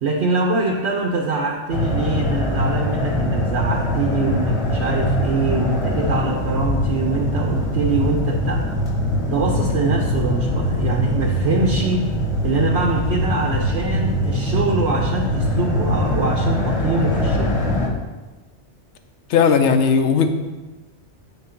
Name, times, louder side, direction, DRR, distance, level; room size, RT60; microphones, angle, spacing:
voice 1, 0.0-8.7 9.3-12.1 12.4-17.5, right 3 dB, 70° right, 0 dB, 1.0 m, -23 dB
sound 1, 1.7-17.9, left 1 dB, 30° left, 1.0 m, -22 dB
voice 2, 19.3-20.3, left 6 dB, 80° left, 7 dB, 1.0 m, -16 dB
8.6 x 3.8 x 5.8 m, 1.2 s
omnidirectional pair, 1.2 m